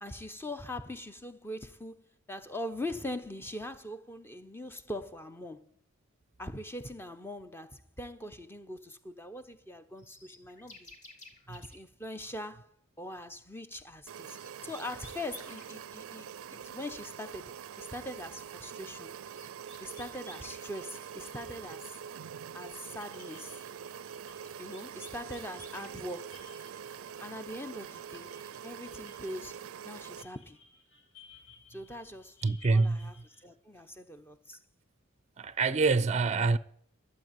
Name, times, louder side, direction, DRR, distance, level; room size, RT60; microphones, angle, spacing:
voice 1, 0.0-5.7 6.4-10.9 11.5-12.7 13.0-14.4 14.6-19.1 19.8-22.0 22.5-23.6 24.6-26.5 27.2-28.3 28.6-30.6 31.7-32.4 32.7-33.2 33.4-34.6, left 1 dB, 10° left, 0.8 m, -42 dB
sound 1, 10.0-11.8 14.1-15.8 19.1-20.7 24.1-26.1 29.1-29.7, left 2 dB, 35° left, 2.6 m, -54 dB
sound 2, 14.1-30.2, right 8 dB, 85° right, 0.4 m, -45 dB
sound 3, 20.5-33.4, left 5 dB, 70° left, 6.0 m, -60 dB
voice 2, 32.4-33.1 35.4-36.6, right 3 dB, 35° right, 0.5 m, -26 dB
12.0 x 8.2 x 9.1 m
head